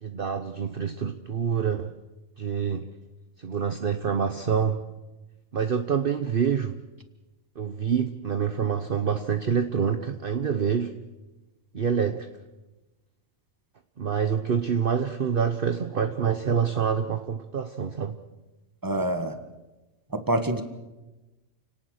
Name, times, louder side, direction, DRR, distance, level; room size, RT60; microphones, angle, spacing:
voice 1, 0.0-1.9 2.4-2.9 3.4-4.8 5.5-6.8 7.6-10.9 11.7-12.3 14.0-18.2, right 7 dB, 45° right, 9 dB, 1.1 m, -26 dB
voice 2, 18.8-19.3 20.3-20.6, right 1 dB, 15° right, 9 dB, 1.7 m, -25 dB
29.0 x 18.5 x 6.6 m, 1.1 s
omnidirectional pair, 1.4 m